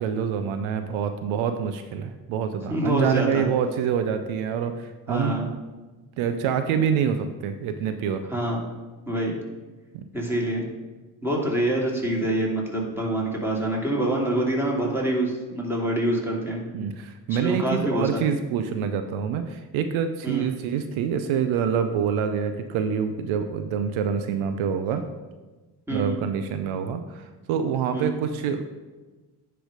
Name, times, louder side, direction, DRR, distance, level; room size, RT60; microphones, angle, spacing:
voice 1, 0.0-5.6 6.2-8.2 9.9-10.0 16.7-25.1 25.9-28.7, right 7 dB, 75° right, 9 dB, 0.6 m, -26 dB
voice 2, 2.7-3.5 5.1-5.5 8.3-8.6 9.1-9.4 10.1-10.7 11.2-16.6 17.3-18.1 20.2-20.5 25.9-26.2 27.9-28.2, right 1 dB, 5° right, -3 dB, 2.6 m, -26 dB
9.9 x 3.4 x 5.0 m, 1.2 s
hypercardioid pair, 45°, 49 cm